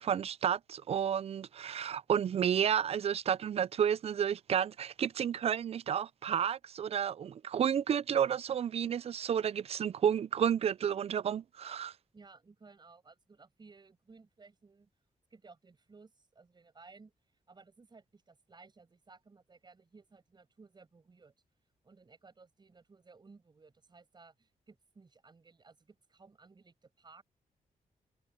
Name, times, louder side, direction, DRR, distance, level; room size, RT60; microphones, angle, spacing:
voice 1, 0.0-11.9, right 8 dB, 45° right, 0.4 m, -31 dB
voice 2, 12.1-14.9 15.3-17.1 17.5-21.3 21.8-27.2, right 4 dB, 30° right, 7.0 m, -58 dB
wide cardioid pair, 135°, 14 cm